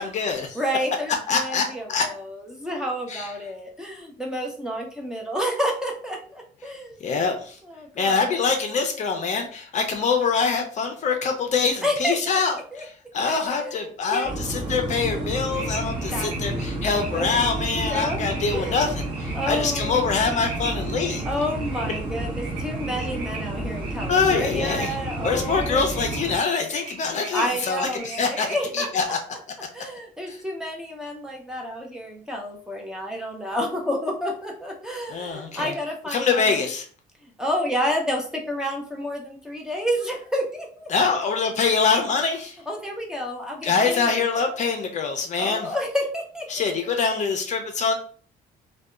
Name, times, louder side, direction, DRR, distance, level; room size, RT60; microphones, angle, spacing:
voice 1, 0.0-0.6 1.3-1.6 1.9-2.0 3.1-3.3 7.0-7.5 8.0-12.9 13.1-18.9 19.2-21.2 24.1-24.9 25.2-28.5 28.7-29.2 35.1-35.7 36.1-36.8 40.9-42.5 43.6-45.7 46.5-47.9, left 5 dB, 45° left, 4 dB, 0.5 m, -24 dB
voice 2, 0.5-7.0 7.6-8.4 11.8-12.8 13.2-14.6 16.1-16.3 17.1-17.4 17.7-18.2 18.5-18.9 19.3-20.2 21.2-26.3 27.3-29.1 29.7-36.7 37.2-40.9 42.7-44.7 45.3-46.9, equal, 5° right, -1 dB, 0.6 m, -30 dB
sound 1, 14.2-26.4, right 2 dB, 30° right, 0.9 m, -31 dB
sound 2, 15.3-28.7, right 3 dB, 85° right, 1.0 m, -40 dB
2.6 x 2.2 x 2.3 m, 0.44 s
cardioid pair, 110°, 17 cm